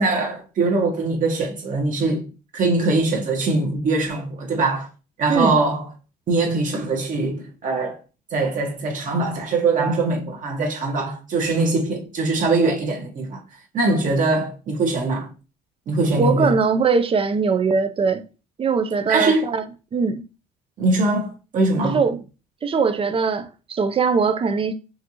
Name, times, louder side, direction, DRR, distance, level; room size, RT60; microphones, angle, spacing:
voice 1, 0.0-2.3 2.5-4.9 5.2-5.9 6.3-8.0 8.3-13.4 13.7-15.3 15.9-16.5 19.1-19.5 20.8-22.0, right 3 dB, 50° right, 1.6 m, -22 dB
voice 2, 16.2-18.2 18.6-19.6 19.9-20.2 21.8-22.2 22.6-24.7, right 5 dB, 35° right, 0.6 m, -21 dB
5.7 x 2.8 x 2.9 m
cardioid pair, 110°, 17 cm